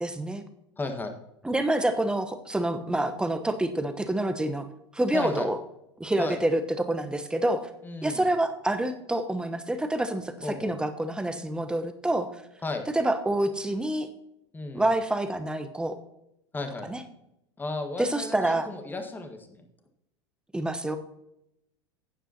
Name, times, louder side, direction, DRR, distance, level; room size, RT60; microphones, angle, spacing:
voice 1, 0.0-0.4 1.4-4.6 4.9-5.6 6.0-7.7 8.0-12.3 12.9-14.1 14.7-16.0 16.9-17.0 18.0-18.7 20.5-21.0, right 1 dB, 5° right, 8 dB, 1.0 m, -27 dB
voice 2, 0.8-1.2 5.1-5.5 6.2-6.4 7.8-8.2 10.4-10.8 12.6-12.8 14.5-14.9 16.5-16.9 17.6-19.7, left 3 dB, 15° left, 5 dB, 1.5 m, -34 dB
15.5 x 9.9 x 2.9 m, 0.82 s
figure-of-eight pair, 85°, 14 cm